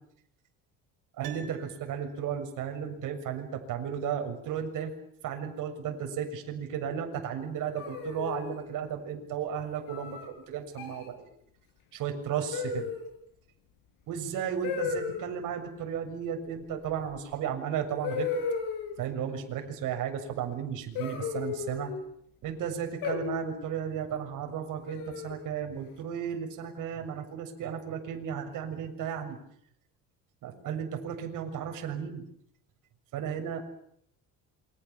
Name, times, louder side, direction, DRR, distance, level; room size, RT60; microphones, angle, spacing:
voice 1, 1.2-4.9 5.2-11.3 11.9-12.9 14.1-18.3 19.0-21.9 22.4-29.4 30.4-32.2 33.1-33.8, right 8 dB, 60° right, 5 dB, 6.9 m, -34 dB
Piano, 1.2-2.5 2.8-2.9, right 9 dB, 85° right, 4.8 m, -48 dB
sound 1, 7.8-8.6 9.9-10.3 10.7-11.1 12.5-13.1 14.6-15.2 17.1-17.2 18.0-19.0 20.9-22.0 23.0-23.6 24.9-25.5, left 6 dB, 80° left, 7.4 m, -34 dB
28.5 x 25.0 x 7.3 m, 0.70 s
cardioid pair, 145°, 35 cm